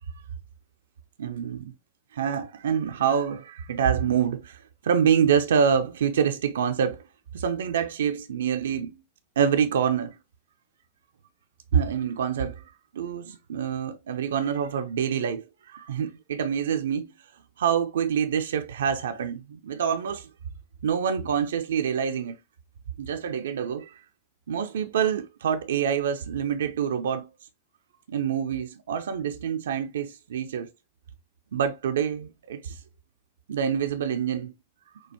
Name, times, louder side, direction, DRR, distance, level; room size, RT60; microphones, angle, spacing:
voice 1, 1.2-1.7 2.1-7.1 7.3-8.9 9.4-10.2 11.7-12.6 12.9-17.1 17.6-20.3 20.8-22.4 23.0-24.0 24.5-27.3 28.1-30.7 31.5-32.8 33.5-34.5, right 7 dB, 65° right, 0.5 m, -26 dB
6.2 x 2.3 x 2.8 m
figure-of-eight pair, 90°, 0 cm